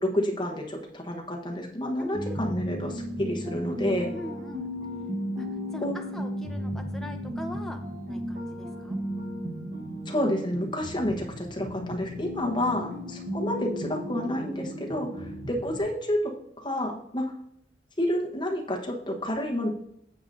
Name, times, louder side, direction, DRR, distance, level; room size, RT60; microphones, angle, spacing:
voice 1, 0.0-4.1 5.8-5.9 10.1-17.4 18.0-19.7, left 1 dB, 25° left, 0 dB, 1.1 m, -29 dB
voice 2, 2.0-2.5 4.1-4.7 5.4-9.0 12.9-13.2 15.2-15.4, equal, ahead, 3 dB, 0.6 m, -42 dB
sound 1, 2.1-15.8, equal, 40° right, 1.1 m, -35 dB
9.5 x 7.0 x 2.6 m, 0.72 s
head